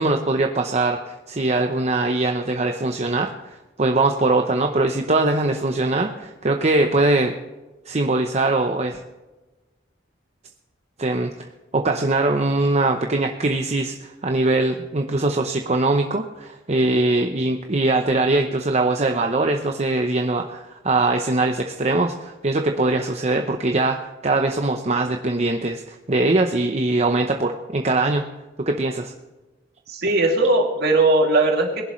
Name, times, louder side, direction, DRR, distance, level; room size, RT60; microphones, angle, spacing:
voice 1, 0.0-3.3 3.8-7.3 7.9-9.0 11.0-11.5 11.7-28.2 28.7-29.1, right 2 dB, 35° right, 4 dB, 0.8 m, -21 dB
voice 2, 29.9-31.8, right 2 dB, 55° right, 1 dB, 2.7 m, -18 dB
20.5 x 11.0 x 3.2 m, 1.2 s
head